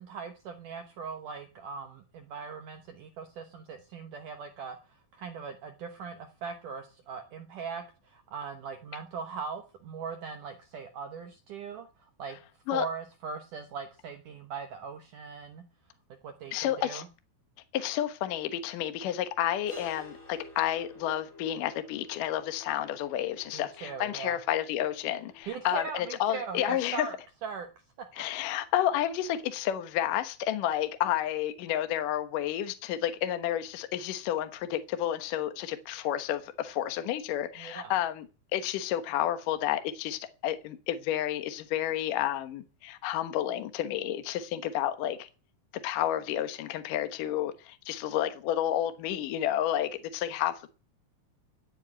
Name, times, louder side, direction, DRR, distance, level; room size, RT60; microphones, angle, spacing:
voice 1, 0.0-12.4 12.7-15.6 16.2-17.1 23.5-24.4 25.5-27.2 27.4-27.7 28.2-28.3 37.6-38.0, right 5 dB, 70° right, 2.0 m, -40 dB
voice 2, 16.5-17.0 17.7-27.1 28.2-38.3 38.5-45.3 45.8-50.5, left 12 dB, 65° left, 2.2 m, -30 dB
sound 1, 19.7-25.4, left 2 dB, 40° left, 7.0 m, -50 dB
15.5 x 8.0 x 8.7 m
omnidirectional pair, 5.1 m